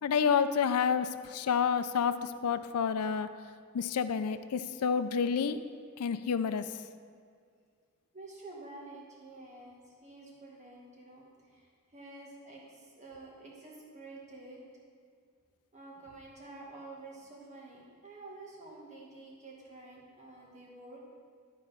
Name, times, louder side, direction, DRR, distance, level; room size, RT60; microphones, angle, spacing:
voice 1, 0.0-3.3 3.7-5.6 6.0-6.6, left 6 dB, 80° left, 11 dB, 0.4 m, -29 dB
voice 2, 8.1-14.6 15.7-21.0, right 2 dB, 30° right, -3 dB, 1.7 m, -49 dB
12.5 x 4.2 x 5.0 m, 2.1 s
head